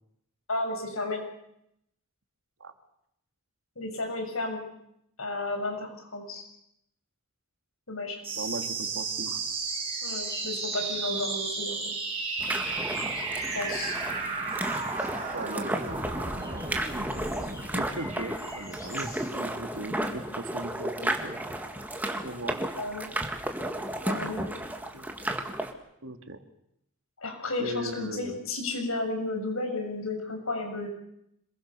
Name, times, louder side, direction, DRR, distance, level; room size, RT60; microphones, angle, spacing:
voice 1, 0.5-1.2 3.7-4.6 5.2-6.4 7.9-8.2 10.0-11.8 13.5-14.0 22.8-23.1 24.0-24.4 27.2-30.9, left 2 dB, 80° left, 4 dB, 6.7 m, -32 dB
sound 1, 8.2-19.3, right 4 dB, 30° right, 5.2 m, -34 dB
voice 2, 8.4-9.4 15.3-15.8 17.7-21.4 22.2-22.6 24.9-25.1 26.0-26.4 27.6-28.4, right 2 dB, 75° right, 7 dB, 2.3 m, -38 dB
sound 2, 9.3-19.4, left 1 dB, 15° left, 5.2 m, -45 dB
sound 3, 12.4-25.7, right 1 dB, 10° right, 1.9 m, -33 dB
27.0 x 21.5 x 6.8 m, 0.77 s
head